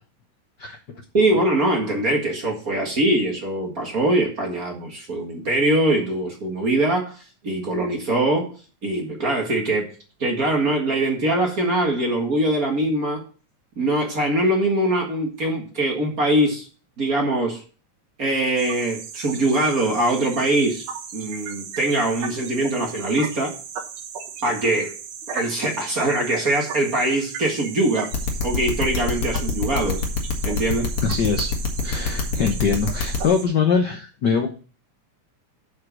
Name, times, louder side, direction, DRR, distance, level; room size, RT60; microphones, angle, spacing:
voice 1, 1.1-8.5 8.8-9.8 10.2-13.2 13.8-16.6 17.0-17.6 18.2-20.8 21.1-23.5 24.4-24.9 25.3-28.1 28.4-30.0 30.4-30.9, right 1 dB, 35° right, 1 dB, 1.7 m, -22 dB
sound 1, 18.6-33.5, right 7 dB, 85° right, 2.7 m, -36 dB
sound 2, 28.1-33.2, left 5 dB, 55° left, 2.4 m, -24 dB
voice 2, 31.0-31.5 31.8-34.5, left 5 dB, 75° left, 4 dB, 0.9 m, -22 dB
7.4 x 6.1 x 6.3 m, 0.37 s
omnidirectional pair, 3.4 m